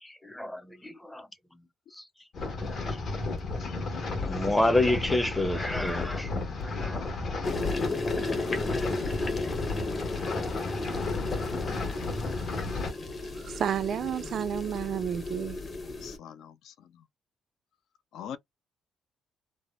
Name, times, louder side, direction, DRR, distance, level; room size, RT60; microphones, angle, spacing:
voice 1, 0.0-1.3 1.9-2.0 2.6-3.0 4.1-6.4 6.6-7.1, left 1 dB, 10° left, 0.5 m, -29 dB
sound 1, 2.3-12.9, left 3 dB, 60° left, 1.4 m, -33 dB
sound 2, 7.4-16.2, left 3 dB, 35° left, 0.9 m, -34 dB
voice 2, 13.4-15.6, right 9 dB, 60° right, 0.3 m, -31 dB
voice 3, 16.0-16.7 18.1-18.4, left 9 dB, 80° left, 0.4 m, -41 dB
3.2 x 2.1 x 2.4 m
cardioid pair, 115°, 0 cm